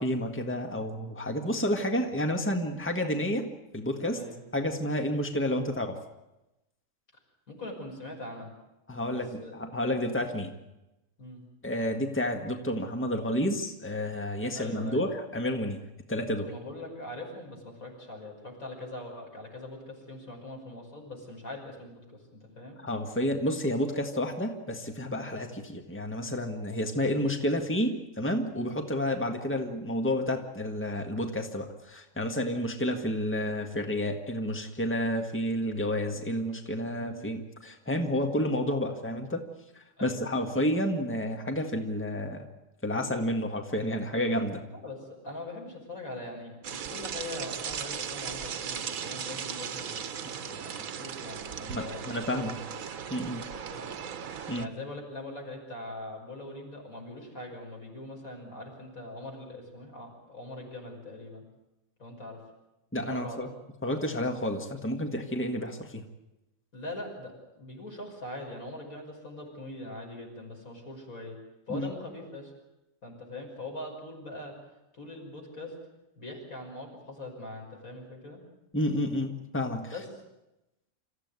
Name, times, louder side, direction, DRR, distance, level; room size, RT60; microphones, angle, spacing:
voice 1, 0.0-4.2 4.5-6.0 8.9-10.5 11.6-15.8 16.1-16.5 22.8-39.4 40.0-42.5 42.8-44.6 51.7-52.5 53.1-53.4 54.5-54.7 62.9-63.5 63.8-66.0 71.7-71.9 78.7-79.9, left 1 dB, 10° left, 4 dB, 1.8 m, -30 dB
voice 2, 7.5-8.5 9.1-9.5 9.8-10.0 11.2-11.4 14.5-15.1 16.5-22.8 29.2-29.4 37.0-37.4 40.0-40.5 44.7-52.8 53.5-54.0 54.6-61.4 62.0-62.4 63.0-63.5 66.7-71.4 71.7-72.5 73.0-74.5 74.9-75.7 76.2-78.4 79.8-80.1, left 2 dB, 85° left, 0 dB, 6.3 m, -42 dB
sound 1, 46.6-54.7, right 7 dB, 80° right, 1.4 m, -37 dB
26.5 x 15.0 x 9.6 m, 0.94 s
omnidirectional pair, 1.4 m